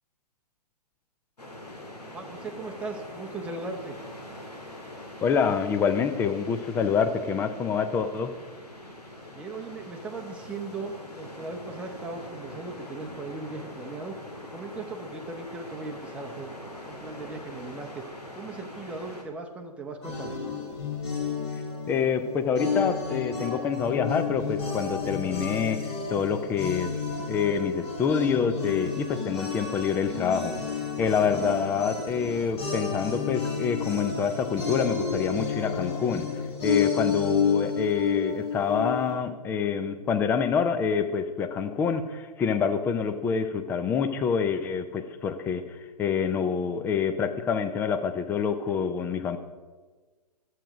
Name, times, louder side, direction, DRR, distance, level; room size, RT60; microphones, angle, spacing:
sound 1, 1.4-19.2, left 1 dB, 80° left, 2.0 m, -43 dB
voice 1, 2.1-4.0 9.3-16.5 16.9-18.0 18.3-20.4, right 3 dB, 5° right, 2 dB, 0.9 m, -38 dB
voice 2, 5.2-8.3 21.9-26.9 27.3-30.6 31.0-36.3 36.6-49.4, left 6 dB, 10° left, 9 dB, 0.5 m, -27 dB
sound 2, 20.0-39.1, left 5 dB, 40° left, 2.9 m, -31 dB
11.5 x 7.9 x 5.0 m, 1.3 s
figure-of-eight pair, 125°, 20 cm